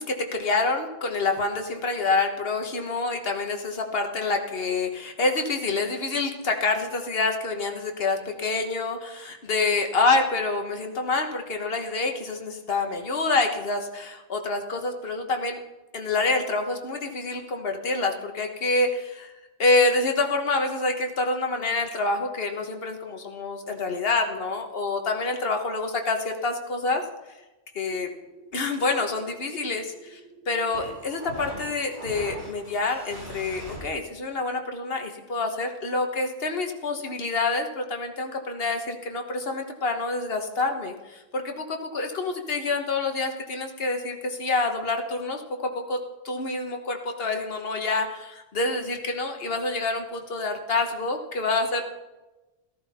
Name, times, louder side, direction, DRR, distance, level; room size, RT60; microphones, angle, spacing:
voice 1, 0.0-15.6 15.9-19.3 19.6-27.0 27.7-28.1 28.5-30.2 30.5-45.4 45.9-46.0 46.2-51.8, left 3 dB, 60° left, 4 dB, 1.5 m, -27 dB
sound 1, 27.9-33.8, right 1 dB, 75° right, 4.1 m, -42 dB
14.0 x 14.0 x 4.2 m, 1.1 s
omnidirectional pair, 1.1 m